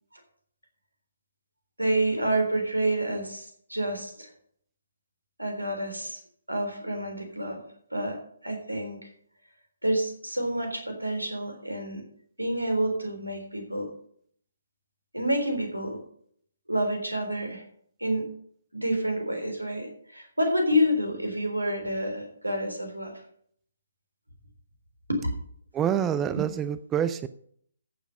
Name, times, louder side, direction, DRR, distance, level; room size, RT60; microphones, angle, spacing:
voice 1, 1.8-4.3 5.4-6.2 6.5-7.7 7.9-9.1 9.8-12.0 12.4-13.9 15.1-16.0 16.7-17.6 18.0-18.3 18.7-23.2 25.1-25.2, equal, 85° right, 4 dB, 3.7 m, -28 dB
voice 2, 25.7-27.3, right 9 dB, 15° right, 14 dB, 0.4 m, -26 dB
14.5 x 6.9 x 5.5 m, 0.63 s
figure-of-eight pair, 135°, 0 cm